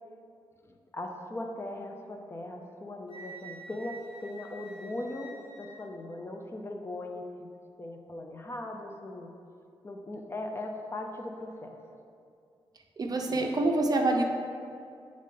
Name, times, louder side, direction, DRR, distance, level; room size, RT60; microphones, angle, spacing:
voice 1, 0.6-7.5 7.8-9.3 9.8-11.8 13.3-13.5, left 1 dB, 25° left, 2 dB, 0.5 m, -39 dB
Wind instrument woodwind instrument, 3.1-5.9, right 2 dB, 80° left, 1.1 m, -48 dB
voice 2, 13.0-14.2, right 2 dB, 45° right, 3 dB, 0.6 m, -26 dB
8.9 x 3.7 x 3.7 m, 2.4 s
wide cardioid pair, 120°, 9 cm